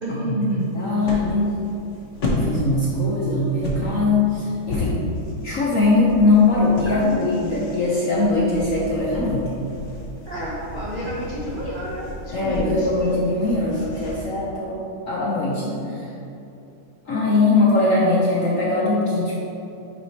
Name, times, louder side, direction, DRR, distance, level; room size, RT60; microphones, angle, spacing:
voice 1, 0.0-0.7 6.9-7.2 10.2-12.8, equal, 60° right, -6 dB, 0.5 m, -29 dB
sound 1, 0.6-14.1, left 1 dB, 45° left, 1.1 m, -32 dB
voice 2, 0.7-1.5 2.3-5.0 5.4-9.5 12.3-14.8 15.1-16.1 17.1-19.4, left 2 dB, 60° left, -5 dB, 0.8 m, -21 dB
8.8 x 3.4 x 4.2 m, 2.8 s
omnidirectional pair, 2.2 m